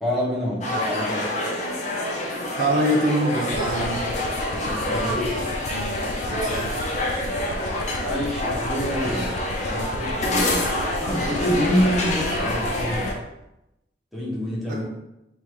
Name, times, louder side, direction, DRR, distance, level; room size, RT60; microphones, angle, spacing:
voice 1, 0.0-1.3 4.5-5.3 8.0-9.3 9.6-10.7 11.0-13.1 14.1-14.8, equal, ahead, -6 dB, 1.1 m, -27 dB
sound 1, 0.6-13.1, left 1 dB, 40° left, 0.8 m, -27 dB
voice 2, 2.6-4.1 5.3-6.0 6.3-6.8 14.7-14.8, right 1 dB, 50° right, 0 dB, 0.5 m, -25 dB
sound 2, 3.5-13.1, left 4 dB, 85° left, 0.5 m, -35 dB
3.6 x 2.7 x 4.6 m, 0.90 s
head